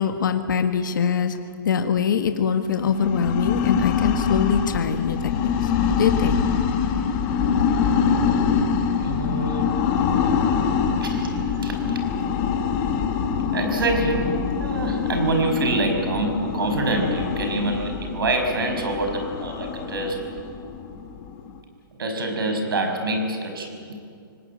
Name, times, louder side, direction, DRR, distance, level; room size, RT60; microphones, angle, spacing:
voice 1, 0.0-1.4 1.6-5.7 6.0-6.4, left 7 dB, 65° left, 7 dB, 1.6 m, -23 dB
sound 1, 2.8-21.6, left 6 dB, 20° left, 1.4 m, -24 dB
voice 2, 9.0-9.8 11.0-12.0 13.5-20.2 22.0-24.0, right 2 dB, 85° right, 4 dB, 5.8 m, -26 dB
25.0 x 19.0 x 8.9 m, 2.4 s
hypercardioid pair, 175°, 12 cm